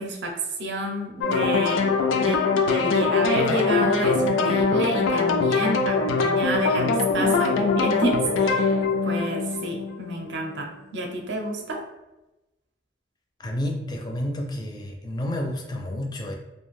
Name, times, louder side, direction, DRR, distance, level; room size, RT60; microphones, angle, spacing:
voice 1, 0.0-1.8 2.1-11.8, right 1 dB, 65° right, 2 dB, 0.5 m, -29 dB
sound 1, 1.2-10.2, left 4 dB, 90° left, 0.3 m, -22 dB
voice 2, 13.4-16.3, left 1 dB, 20° left, 1 dB, 0.4 m, -30 dB
2.5 x 2.1 x 3.1 m, 1.0 s
head